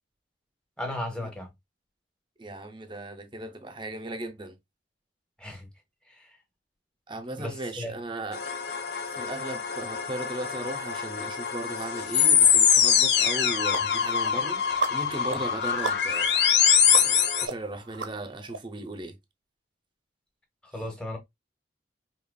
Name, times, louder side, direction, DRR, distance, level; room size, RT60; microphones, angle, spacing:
voice 1, 0.8-1.5 5.4-5.7 6.1-6.2 7.4-7.9 20.7-21.2, left 1 dB, 5° left, 1.2 m, -35 dB
voice 2, 2.4-4.6 7.1-8.7 9.1-16.4 16.9-19.2 20.8-20.9, right 2 dB, 25° right, 0.7 m, -37 dB
sound 1, 8.3-17.5, left 8 dB, 65° left, 0.7 m, -24 dB
sound 2, 12.7-12.8 13.2-18.6, right 5 dB, 90° right, 0.9 m, -37 dB
5.0 x 2.9 x 2.3 m
head